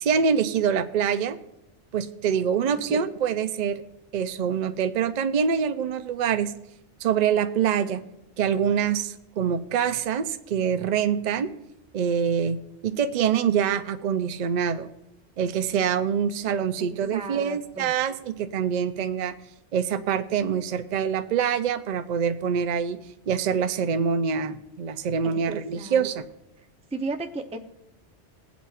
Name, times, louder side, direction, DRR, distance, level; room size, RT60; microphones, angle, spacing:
voice 1, 0.0-1.4 1.9-3.8 4.1-6.5 7.0-8.0 8.4-11.5 11.9-12.6 12.8-14.9 15.4-19.4 19.7-23.0 23.3-26.2, right 7 dB, 50° right, 9 dB, 0.6 m, -25 dB
voice 2, 2.7-3.0 16.8-17.9 25.2-26.0 26.9-27.6, right 3 dB, 5° right, 4 dB, 0.5 m, -35 dB
21.0 x 8.1 x 2.5 m, 0.86 s
omnidirectional pair, 1.2 m